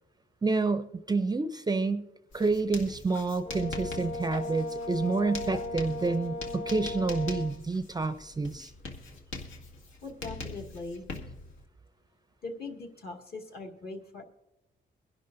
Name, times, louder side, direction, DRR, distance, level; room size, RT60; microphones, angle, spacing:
voice 1, 0.4-2.1 2.3-8.7, right 3 dB, 20° right, 10 dB, 0.5 m, -29 dB
Writing, 2.3-11.6, left 3 dB, 85° left, 1.9 m, -43 dB
Brass instrument, 3.4-7.5, left 2 dB, 30° left, 0.8 m, -37 dB
voice 2, 10.0-11.0 12.4-14.2, left 3 dB, 55° left, 2 dB, 2.1 m, -40 dB
23.5 x 11.0 x 2.6 m, 0.92 s
cardioid pair, 125°, 20 cm